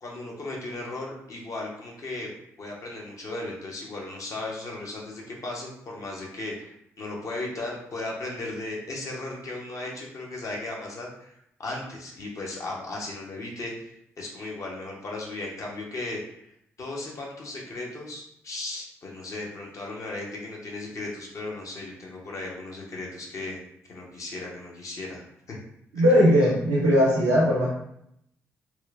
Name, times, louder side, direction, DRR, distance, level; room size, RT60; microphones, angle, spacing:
voice 1, 0.0-2.3 2.6-11.3 11.6-13.9 14.2-16.2 16.8-23.6 23.9-25.6 26.0-26.1, left 2 dB, 50° left, -2 dB, 0.8 m, -36 dB
voice 2, 25.9-27.7, equal, 90° right, -7 dB, 0.6 m, -19 dB
2.9 x 2.1 x 2.4 m, 0.74 s
hypercardioid pair, 45°, 7 cm